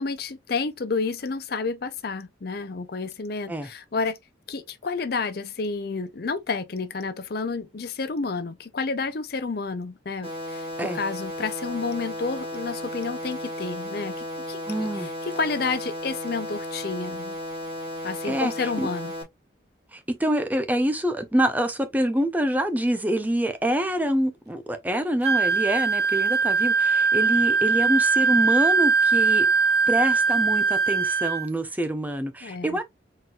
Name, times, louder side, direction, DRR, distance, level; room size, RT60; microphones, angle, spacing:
voice 1, 0.0-4.2 4.5-17.4 18.0-19.1 32.4-32.8, left 4 dB, 50° left, 0.5 m, -30 dB
sound 1, 10.2-19.2, left 1 dB, 30° right, 2.3 m, -34 dB
voice 2, 14.7-15.1 18.2-18.9 19.9-29.5 29.9-32.8, right 1 dB, 10° right, 0.5 m, -26 dB
Wind instrument woodwind instrument, 25.2-31.5, right 5 dB, 55° right, 0.8 m, -21 dB
4.2 x 3.9 x 2.3 m
head